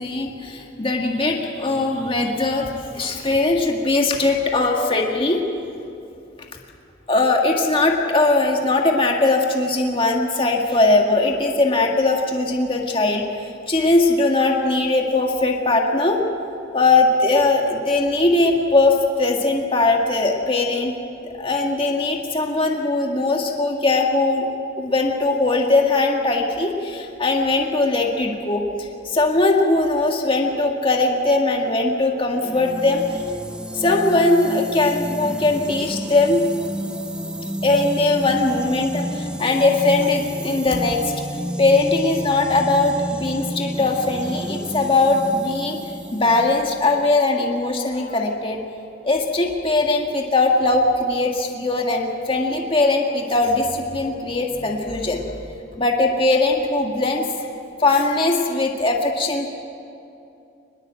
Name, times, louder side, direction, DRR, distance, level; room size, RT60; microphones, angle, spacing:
voice 1, 0.0-5.4 7.1-16.2 16.7-20.9 21.4-24.5 24.8-33.0 33.7-36.4 37.6-41.1 41.6-45.8 46.1-48.6 49.0-55.2 55.8-57.3 57.8-59.5, left 2 dB, 30° left, 1 dB, 1.8 m, -20 dB
sound 1, 32.4-47.1, equal, 5° right, 1.0 m, -31 dB
24.5 x 21.0 x 7.6 m, 2.7 s
head